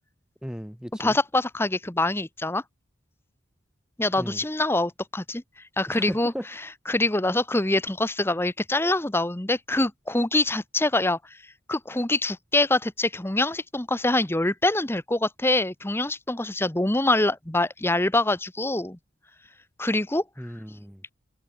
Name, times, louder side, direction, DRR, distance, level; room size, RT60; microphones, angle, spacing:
voice 1, 0.4-1.2 4.2-4.4 5.9-6.5 20.4-21.0, equal, 5° right, 5.0 m, -36 dB
voice 2, 1.0-2.6 4.0-5.4 5.8-6.3 6.9-11.2 11.7-19.0 19.8-20.2, left 2 dB, 10° left, 0.9 m, -24 dB
head